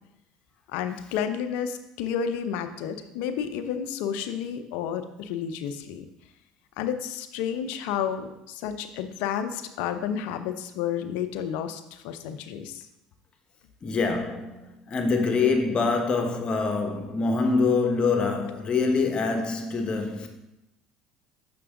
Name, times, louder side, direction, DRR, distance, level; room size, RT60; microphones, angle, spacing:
voice 1, 0.7-6.1 6.8-12.8, left 8 dB, 75° left, 0.6 m, -31 dB
voice 2, 13.8-20.3, left 4 dB, 35° left, 1.2 m, -25 dB
6.8 x 6.0 x 3.7 m
supercardioid pair, 85°, 3 cm